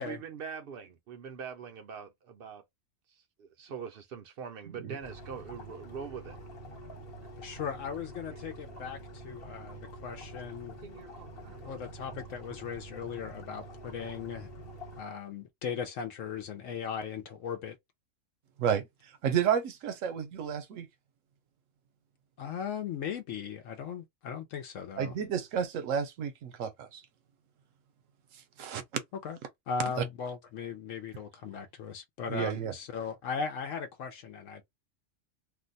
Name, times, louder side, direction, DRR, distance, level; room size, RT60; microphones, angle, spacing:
voice 1, 0.0-2.6 3.1-6.4 8.3-8.4 10.8-11.9, right 6 dB, 55° right, 0.7 m, -43 dB
sound 1, 5.0-15.0, right 1 dB, 50° left, 1.2 m, -46 dB
voice 2, 7.4-10.8 11.6-14.5 15.0-17.8 22.4-25.1 29.2-29.4 29.7-34.6, left 6 dB, 75° left, 0.9 m, -38 dB
voice 3, 19.2-20.9 25.0-27.0 28.6-28.8 32.3-32.7, right 8 dB, 75° right, 1.0 m, -31 dB
2.6 x 2.2 x 3.9 m
omnidirectional pair, 1.4 m